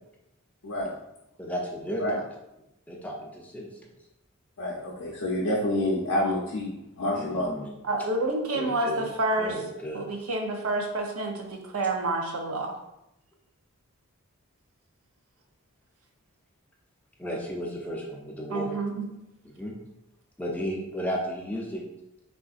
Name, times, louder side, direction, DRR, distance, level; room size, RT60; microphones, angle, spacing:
voice 1, 1.4-2.2 2.9-3.9 7.1-7.8 8.5-9.1 9.4-10.1 17.2-18.7 19.4-19.8 20.4-21.8, equal, 5° left, -1 dB, 0.4 m, -34 dB
voice 2, 4.6-7.5, left 1 dB, 90° left, -5 dB, 0.5 m, -28 dB
voice 3, 7.8-9.6 9.9-12.7 18.5-19.0, right 2 dB, 90° right, 3 dB, 0.6 m, -28 dB
3.7 x 2.5 x 2.4 m, 0.87 s
head